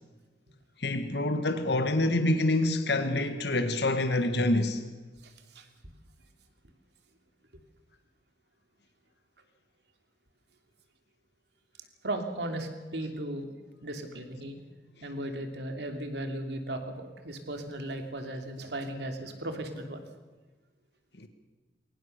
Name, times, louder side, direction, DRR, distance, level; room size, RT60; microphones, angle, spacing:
voice 1, 0.8-4.8 21.2-21.3, left 2 dB, 70° left, 1.6 m, -26 dB
voice 2, 5.2-5.7 12.0-13.5 13.8-14.6 15.0-20.0, right 1 dB, 70° right, 2.9 m, -36 dB
22.5 x 19.0 x 6.7 m
head